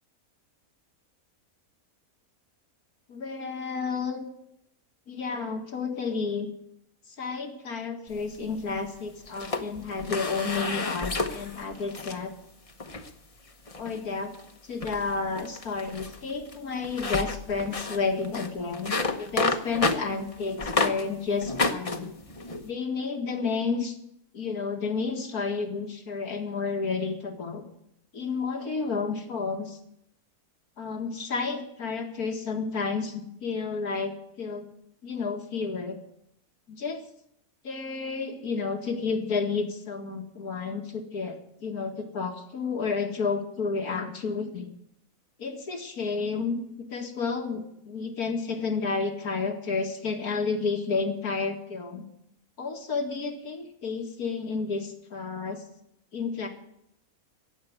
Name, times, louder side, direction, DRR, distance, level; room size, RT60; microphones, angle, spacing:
voice 1, 3.1-4.3 5.1-6.5 7.2-12.3 13.8-14.3 14.7-22.2 22.6-23.9 24.3-27.6 28.1-29.8 30.8-34.6 35.0-36.0 36.7-37.0 37.6-44.7 45.4-52.0 52.6-55.6 56.1-56.5, left 4 dB, 85° left, 4 dB, 2.5 m, -31 dB
sound 1, 8.1-8.9 9.2-12.2 12.7-13.1 13.7-14.0 14.3-14.5 14.8-21.0 21.4-22.7, left 3 dB, 25° left, 1.0 m, -31 dB
17.0 x 7.8 x 9.4 m, 0.76 s
omnidirectional pair, 1.5 m